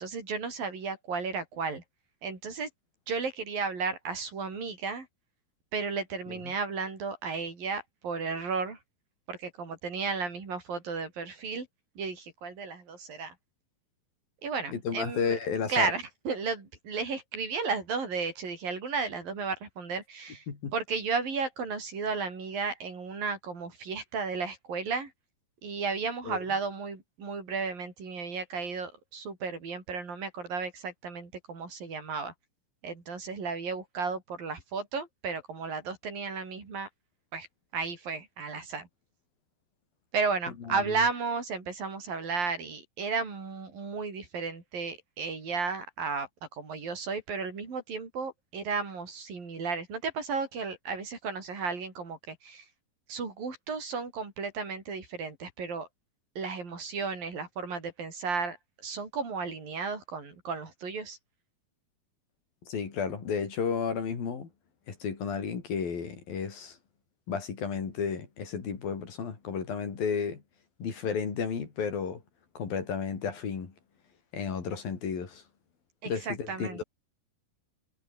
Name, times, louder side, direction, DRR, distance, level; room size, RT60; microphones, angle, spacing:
voice 1, 0.0-1.8 2.2-2.7 3.1-5.1 5.7-8.8 9.3-11.7 12.0-13.3 14.4-15.4 15.7-20.4 20.7-25.1 25.6-32.3 32.8-36.9 37.3-37.5 37.7-38.9 40.1-52.7 53.1-55.9 56.4-61.2 76.0-76.8, right 5 dB, 70° right, 7.4 m, -34 dB
voice 2, 14.7-15.9 20.5-20.7 26.2-26.4 40.7-41.0 62.7-64.5 64.9-66.8 67.3-70.4 70.8-72.2 72.6-73.7 74.3-75.4 76.1-76.8, left 6 dB, 70° left, 5.8 m, -32 dB
omnidirectional pair, 4.3 m